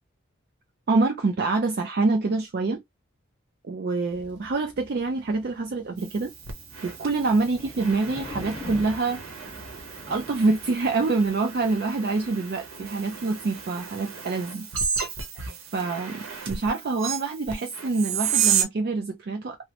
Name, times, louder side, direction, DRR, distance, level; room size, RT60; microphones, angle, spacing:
voice 1, 0.9-2.8 3.6-6.3 6.8-9.2 10.1-14.7 15.7-19.6, right 3 dB, 45° right, 0.4 m, -26 dB
sound 1, 4.1-13.9, left 2 dB, 5° right, 1.0 m, -45 dB
sound 2, 6.0-18.6, right 7 dB, 70° right, 0.9 m, -32 dB
2.9 x 2.0 x 2.8 m
head